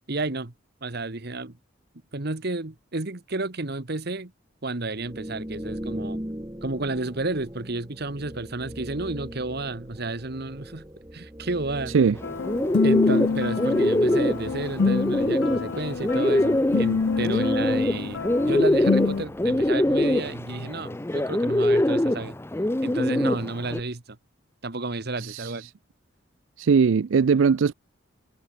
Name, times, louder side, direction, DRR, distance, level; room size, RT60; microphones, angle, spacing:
voice 1, 0.1-0.5 0.8-1.5 2.1-4.3 4.6-6.2 6.6-10.8 11.1-12.0 12.8-22.4 22.8-24.2 24.6-25.7, right 2 dB, 55° right, 1.4 m, -31 dB
sound 1, 4.9-20.7, equal, 15° right, 1.9 m, -41 dB
sound 2, 12.2-19.3, left 4 dB, 65° left, 0.5 m, -26 dB
Bird, 12.2-23.8, left 1 dB, 10° left, 0.5 m, -24 dB
voice 2, 25.2-25.7 26.6-27.7, right 5 dB, 75° right, 0.4 m, -20 dB
head